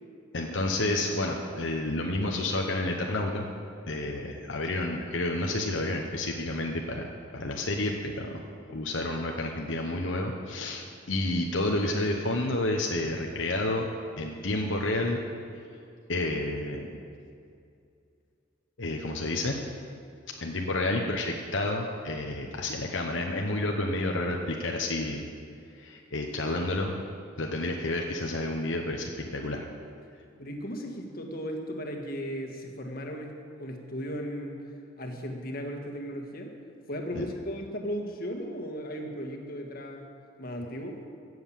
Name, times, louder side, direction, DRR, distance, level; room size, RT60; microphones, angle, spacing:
voice 1, 0.3-3.4 3.9-7.1 7.3-13.9 14.2-15.2 16.1-16.9 18.8-19.6 20.3-25.2 25.8-27.0 27.4-29.6 37.1-37.3, left 2 dB, 80° left, 1 dB, 1.1 m, -30 dB
voice 2, 30.4-34.6 35.0-36.5 36.9-40.1 40.4-41.0, equal, 50° left, 2 dB, 1.7 m, -36 dB
16.0 x 7.9 x 7.4 m, 2.4 s
head